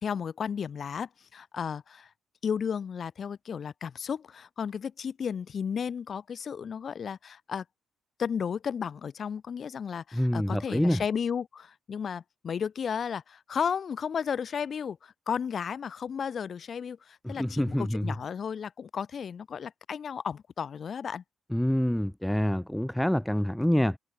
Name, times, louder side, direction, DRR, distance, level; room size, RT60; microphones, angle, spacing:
voice 1, 0.0-2.1 2.4-7.6 8.2-21.2, left 7 dB, 50° left, 0.5 m, -33 dB
voice 2, 10.1-11.0 17.2-18.1 21.5-24.0, equal, 5° left, 0.5 m, -26 dB
cardioid pair, 90°, 0 cm